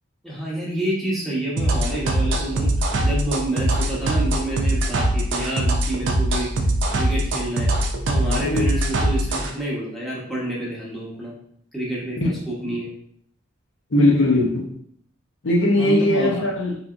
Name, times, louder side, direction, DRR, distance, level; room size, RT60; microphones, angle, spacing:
voice 1, 0.2-6.7 6.9-7.7 8.1-11.3 11.7-12.2 12.5-12.9 15.8-16.3, right 1 dB, ahead, -7 dB, 0.9 m, -28 dB
sound 1, 1.6-9.5, right 1 dB, 65° right, 0.5 m, -22 dB
voice 2, 13.9-14.7 15.4-16.8, left 1 dB, 60° left, -2 dB, 0.7 m, -19 dB
4.0 x 2.8 x 2.4 m, 0.65 s
head